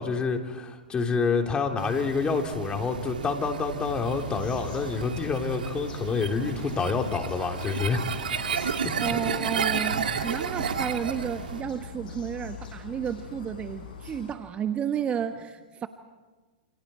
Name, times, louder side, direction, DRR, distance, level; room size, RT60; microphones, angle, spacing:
voice 1, 0.0-8.1, left 5 dB, 20° left, 3 dB, 3.2 m, -28 dB
sound 1, 1.8-11.6, right 6 dB, 85° right, 2.3 m, -32 dB
sound 2, 3.8-14.3, left 6 dB, 75° left, 6.2 m, -43 dB
voice 2, 9.0-15.9, right 8 dB, 25° right, 8 dB, 1.2 m, -32 dB
29.5 x 28.5 x 4.4 m, 1.3 s
hypercardioid pair, 115°, 5 cm